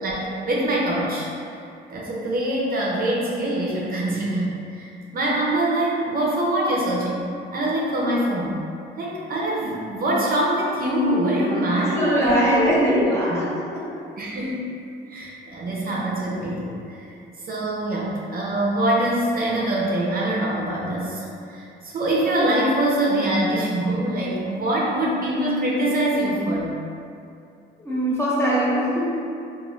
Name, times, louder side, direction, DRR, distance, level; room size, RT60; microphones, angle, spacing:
voice 1, 0.0-1.3 1.9-8.6 9.0-13.4 14.2-14.6 15.1-17.1 17.5-26.8, right 1 dB, 45° right, -5 dB, 0.6 m, -24 dB
voice 2, 11.7-13.8 27.8-29.2, equal, 15° left, -7 dB, 0.8 m, -22 dB
2.5 x 2.4 x 3.1 m, 2.5 s
cardioid pair, 90°, 20 cm